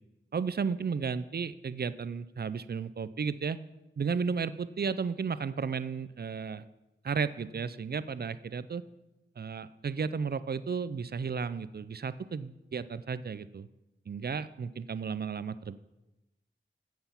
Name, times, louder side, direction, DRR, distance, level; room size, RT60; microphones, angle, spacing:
voice 1, 0.3-3.6 4.0-6.6 7.0-8.8 9.4-13.7 14.1-15.8, right 5 dB, 50° right, 15 dB, 0.4 m, -33 dB
7.7 x 5.8 x 7.1 m, 0.99 s
wide cardioid pair, 45°, 20 cm